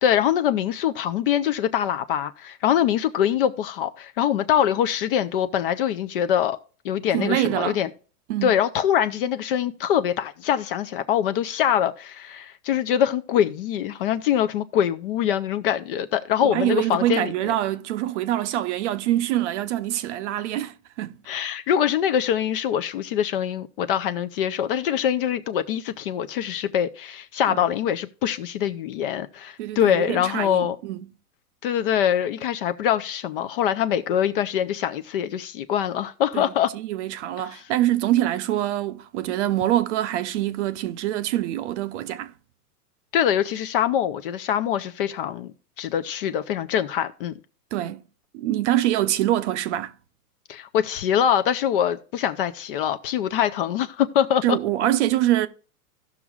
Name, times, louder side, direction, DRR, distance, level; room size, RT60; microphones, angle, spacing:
voice 1, 0.0-6.6 6.8-7.9 8.4-17.3 21.3-30.8 31.6-36.7 37.4-37.6 43.1-47.3 50.5-54.6, left 9 dB, 40° left, 0.5 m, -24 dB
voice 2, 7.1-7.8 8.3-8.6 16.4-21.2 27.5-27.6 29.6-31.1 36.3-42.3 47.7-48.0 48.3-49.9 54.4-55.5, right 13 dB, 50° right, 0.6 m, -25 dB
16.5 x 6.1 x 2.3 m
hypercardioid pair, 140°, 47 cm